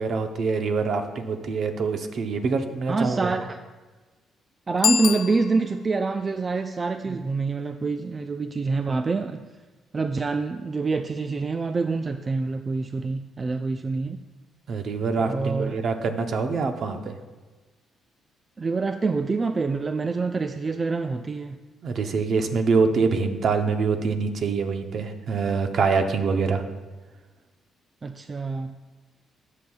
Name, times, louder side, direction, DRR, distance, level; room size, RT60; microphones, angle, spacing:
voice 1, 0.0-3.3 7.1-7.2 14.7-17.1 21.8-26.6, right 4 dB, 60° right, 7 dB, 0.7 m, -25 dB
voice 2, 2.9-3.6 4.7-9.5 9.9-14.2 15.2-15.8 18.6-21.6 28.0-28.7, right 4 dB, 30° right, 8 dB, 0.3 m, -26 dB
Bicycle bell, 4.7-6.0, left 7 dB, 65° left, 0.5 m, -26 dB
12.5 x 6.3 x 2.3 m, 1.3 s
cardioid pair, 90°, 0 cm